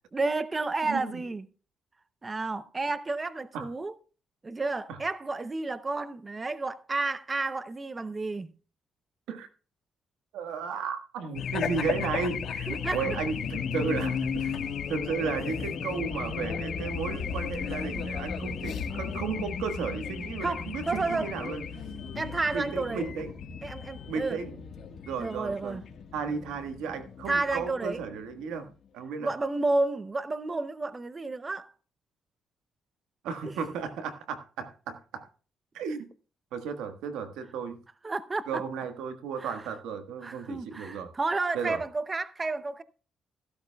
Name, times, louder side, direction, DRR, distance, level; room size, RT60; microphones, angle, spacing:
voice 1, 0.1-1.4 2.2-3.9 4.4-8.5 12.7-13.0 20.4-21.3 22.1-23.1 23.6-24.4 25.2-25.8 27.3-28.0 29.2-31.7 33.4-33.6 38.0-38.6 39.4-39.5 40.2-42.8, right 3 dB, 25° right, 0.7 m, -31 dB
voice 2, 10.3-14.6 14.9-21.8 22.5-23.3 24.1-24.5 25.1-25.8 26.1-28.7 28.9-29.3 33.2-35.3 35.7-36.1 36.5-37.8 38.5-41.1 41.5-41.8, right 6 dB, 90° right, 1.4 m, -34 dB
Race car auto racing / Alarm, 11.4-28.3, left 6 dB, 65° left, 1.6 m, -35 dB
15.5 x 12.0 x 2.3 m
cardioid pair, 90°, 0 cm